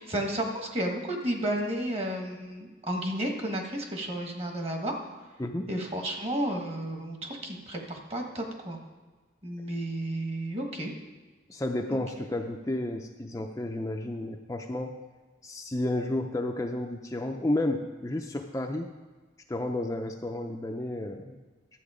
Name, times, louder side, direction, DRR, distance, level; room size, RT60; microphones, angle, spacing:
voice 1, 0.0-4.9 5.7-8.8 9.4-10.9, right 1 dB, 35° right, 2 dB, 1.5 m, -32 dB
voice 2, 5.4-5.7 11.5-14.9 15.4-18.9 19.5-21.4, left 1 dB, 15° left, 3 dB, 0.5 m, -31 dB
11.5 x 7.7 x 5.0 m, 1.3 s
head